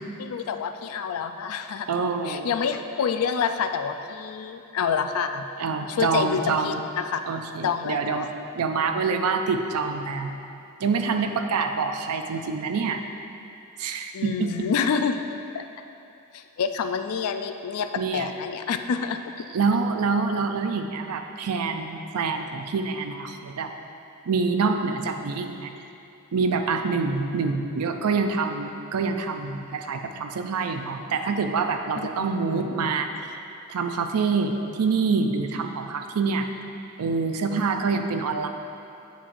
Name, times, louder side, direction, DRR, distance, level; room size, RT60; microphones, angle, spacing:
voice 1, 0.2-1.9 2.2-5.5 5.9-7.2 7.6-8.3 14.1-15.2 15.5-15.6 16.3-19.4 32.2-32.3 32.5-32.9, left 6 dB, 70° left, 7 dB, 0.4 m, -28 dB
voice 2, 1.9-2.6 5.6-6.8 7.3-8.3 8.6-10.3 10.8-13.0 13.8-14.7 18.0-18.3 19.5-23.7 24.3-25.7 26.3-33.1 33.7-36.5 37.0-38.5, right 4 dB, 80° right, 6 dB, 0.5 m, -26 dB
7.3 x 7.0 x 2.5 m, 2.7 s
head